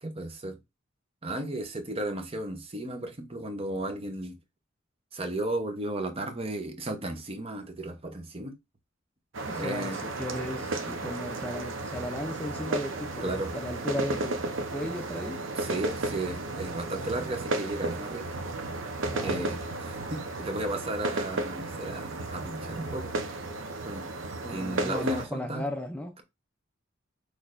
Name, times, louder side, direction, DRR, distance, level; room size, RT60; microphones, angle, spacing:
voice 1, 0.0-0.6 1.2-4.4 5.1-8.5 9.5-10.0 13.2-13.5 15.5-18.3 19.2-23.1 23.8-24.1 24.5-25.7, right 1 dB, 30° right, 0.8 m, -34 dB
sound 1, 9.3-25.3, right 2 dB, 70° right, 0.8 m, -34 dB
voice 2, 9.5-14.4 14.7-15.4 19.1-19.8 24.4-26.2, left 1 dB, 5° left, 0.4 m, -36 dB
6.2 x 3.3 x 2.5 m
head